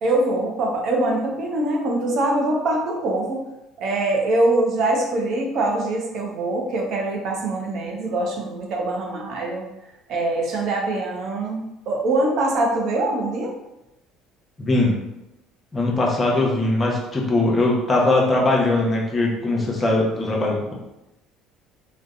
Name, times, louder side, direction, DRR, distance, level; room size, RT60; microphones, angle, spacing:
voice 1, 0.0-3.4 3.8-9.6 10.1-13.5, right 2 dB, 60° right, -1 dB, 0.6 m, -23 dB
voice 2, 14.6-15.0 15.7-20.8, left 2 dB, 30° left, -2 dB, 0.7 m, -20 dB
2.7 x 2.0 x 2.4 m, 0.92 s
hypercardioid pair, 70°, 0 cm